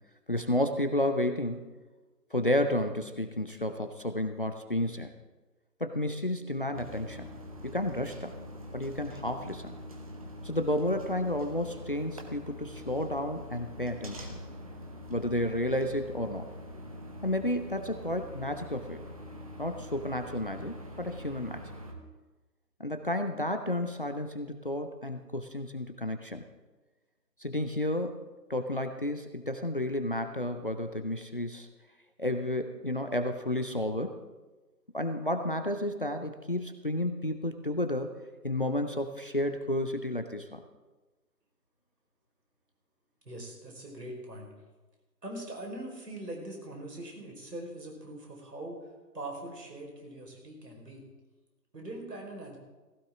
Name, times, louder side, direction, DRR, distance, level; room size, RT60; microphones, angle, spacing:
voice 1, 0.3-1.7 2.3-5.1 5.8-7.3 7.6-8.3 8.7-9.7 10.4-14.4 15.1-16.5 17.2-19.0 19.6-21.7 22.8-26.4 27.4-28.2 28.5-31.7 32.2-34.2 34.9-38.1 38.4-40.6, left 1 dB, 35° left, 7 dB, 0.6 m, -31 dB
sound 1, 6.7-21.9, equal, 20° right, 0.8 m, -44 dB
voice 2, 43.2-44.5 45.2-48.8 49.1-51.0 51.7-52.6, right 1 dB, 70° right, 0 dB, 4.9 m, -42 dB
16.0 x 15.0 x 3.7 m, 1.2 s
figure-of-eight pair, 150°, 50 cm